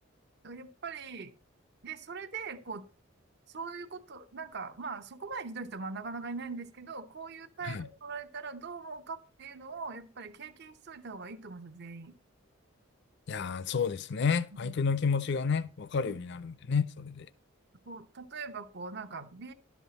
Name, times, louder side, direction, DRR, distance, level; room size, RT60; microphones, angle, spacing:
voice 1, 0.4-1.3 1.8-2.8 3.5-12.1 14.5-14.7 16.1-16.2 17.9-19.5, right 4 dB, 50° right, 0.8 m, -41 dB
voice 2, 13.3-17.3, left 5 dB, 55° left, 0.4 m, -30 dB
11.0 x 7.2 x 4.1 m
head